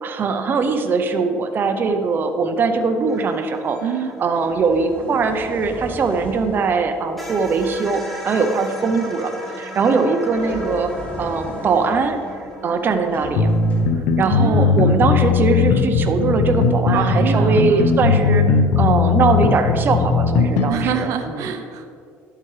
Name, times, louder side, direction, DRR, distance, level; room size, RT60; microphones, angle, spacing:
voice 1, 0.0-3.8 4.2-9.3 9.6-12.2 12.6-13.5 14.2-18.4 18.8-21.4, right 4 dB, 35° right, 6 dB, 0.7 m, -21 dB
sound 1, 3.1-6.5 6.8-6.9 7.2-13.9, equal, ahead, 1.6 m, -38 dB
elevator doors open close, 3.7-3.8 4.3-7.8 10.2-14.3 15.3-15.5, left 1 dB, 25° left, 1.6 m, -37 dB
voice 2, 3.8-4.1 14.2-14.9 16.9-18.0 20.7-22.1, right 8 dB, 70° right, 7 dB, 0.7 m, -26 dB
sound 2, 13.4-20.7, left 5 dB, 80° left, 0.8 m, -17 dB
11.0 x 8.3 x 3.3 m, 2.2 s
cardioid pair, 120°, 6 cm